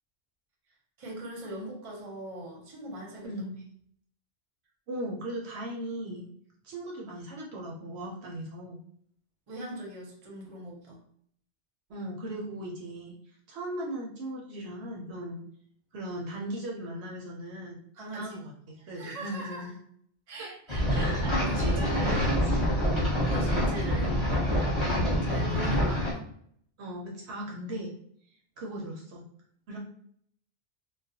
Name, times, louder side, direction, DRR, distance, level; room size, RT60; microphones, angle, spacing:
voice 1, 1.0-3.3 9.5-11.0 17.9-18.4 18.8-19.7 20.3-22.2 23.3-24.4 24.7-24.8 25.2-26.1, right 1 dB, 35° right, -2 dB, 0.7 m, -40 dB
voice 2, 3.2-3.5 4.9-6.3 6.6-8.8 11.9-13.1 13.5-15.4 15.9-17.8 18.1-19.7 20.4-20.5 20.9-22.7 26.8-27.9 28.6-29.2 29.7-29.8, right 1 dB, 70° right, -2 dB, 0.8 m, -38 dB
sound 1, 20.7-26.1, equal, 25° left, 0.9 m, -26 dB
2.3 x 2.1 x 2.7 m, 0.65 s
omnidirectional pair, 1.2 m